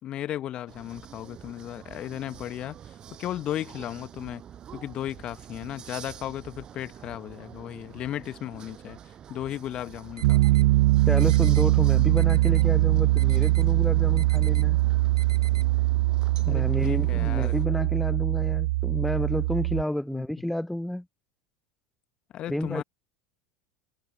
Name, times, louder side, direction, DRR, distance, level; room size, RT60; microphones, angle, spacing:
voice 1, 0.0-4.4 4.7-9.0 9.3-10.7 16.5-17.7 20.1-20.3 22.3-22.8, left 12 dB, 40° left, 1.4 m, -35 dB
sound 1, 0.7-17.7, right 9 dB, 35° right, 6.3 m, -46 dB
Piano, 10.2-19.8, right 19 dB, 60° right, 0.3 m, -22 dB
sound 2, 10.2-10.7 11.2-11.7 12.2-12.7 13.2-13.7 14.2-14.6 15.2-15.6, right 7 dB, 80° right, 3.2 m, -45 dB
voice 2, 11.1-14.8 16.4-21.0 22.5-22.8, left 1 dB, 5° left, 0.5 m, -30 dB
figure-of-eight pair, 75°, 2 cm